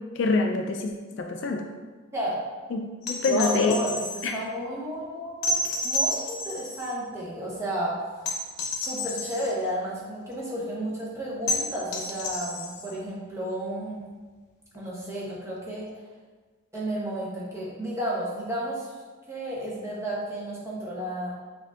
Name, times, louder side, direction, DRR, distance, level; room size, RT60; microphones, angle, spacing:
voice 1, 0.2-1.6 2.7-2.8 3.1-3.8 4.2-4.3, left 3 dB, 55° left, 3 dB, 0.3 m, -25 dB
sound 1, 3.0-4.3 5.4-6.9 8.2-9.5 11.5-12.9 14.7-14.8, left 1 dB, 85° left, 0.7 m, -30 dB
voice 2, 3.2-8.0 8.8-14.0 14.7-15.9 16.7-18.9 19.3-21.3, right 1 dB, 15° right, -6 dB, 0.8 m, -32 dB
6.4 x 2.6 x 2.4 m, 1.4 s
head